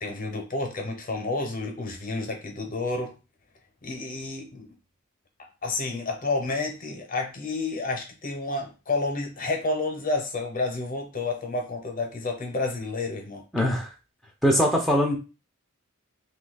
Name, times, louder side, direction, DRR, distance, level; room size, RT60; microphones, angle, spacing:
voice 1, 0.0-3.1 3.8-4.7 5.6-13.4, left 3 dB, 40° left, 3 dB, 0.8 m, -30 dB
voice 2, 13.5-13.9 14.4-15.2, equal, ahead, -1 dB, 0.5 m, -21 dB
2.8 x 2.3 x 4.0 m, 0.30 s
head